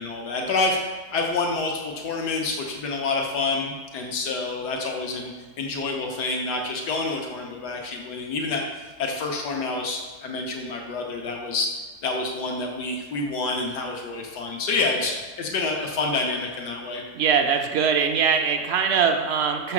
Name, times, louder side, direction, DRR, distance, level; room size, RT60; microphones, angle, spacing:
voice 1, 0.0-5.3 5.6-11.7 12.0-17.0, left 3 dB, 80° left, 1 dB, 1.5 m, -28 dB
voice 2, 17.1-19.7, right 6 dB, 70° right, 5 dB, 0.6 m, -22 dB
6.3 x 3.6 x 5.9 m, 1.4 s
omnidirectional pair, 1.7 m